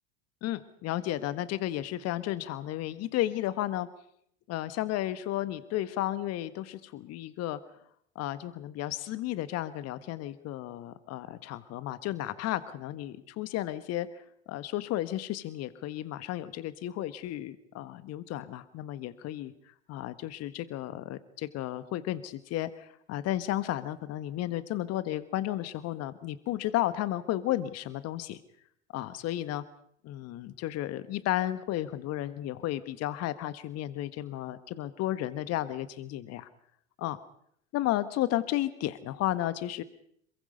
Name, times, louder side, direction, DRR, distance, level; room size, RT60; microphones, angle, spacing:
voice 1, 0.4-3.9 4.5-7.6 8.1-28.4 28.9-29.6 30.0-36.5 37.0-37.2 37.7-39.8, left 14 dB, 45° left, 13 dB, 1.5 m, -33 dB
28.0 x 22.5 x 5.5 m, 0.69 s
figure-of-eight pair, 75°, 35 cm